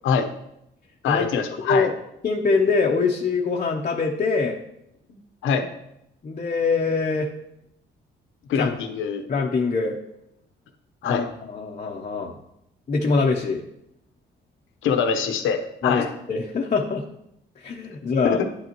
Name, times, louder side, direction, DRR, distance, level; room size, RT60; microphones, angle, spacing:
voice 1, 1.0-1.9 5.1-5.7 8.5-9.2 11.0-11.3 14.8-16.1 18.2-18.5, left 6 dB, 85° left, 6 dB, 1.0 m, -24 dB
voice 2, 2.2-4.6 6.2-7.3 8.6-8.7 9.3-10.0 11.0-12.4 12.9-13.6 15.8-16.0 16.3-17.0 17.6-18.4, left 4 dB, 40° left, 0 dB, 0.9 m, -23 dB
9.8 x 8.3 x 3.0 m, 0.80 s
cardioid pair, 90°, 20 cm